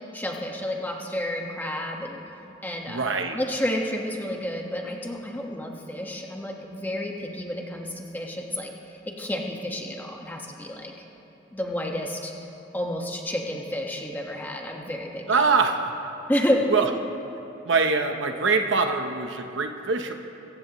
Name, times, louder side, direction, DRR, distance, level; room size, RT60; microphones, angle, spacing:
voice 1, 0.1-2.2 2.6-3.0 3.3-8.7 9.0-10.9 11.5-12.3 12.7-15.2 16.3-16.6, left 1 dB, 10° left, 0 dB, 1.5 m, -30 dB
voice 2, 2.9-3.4 15.3-15.8 16.7-16.9 17.7-20.1, right 4 dB, 70° right, 5 dB, 0.9 m, -23 dB
24.5 x 15.5 x 3.1 m, 3.0 s
head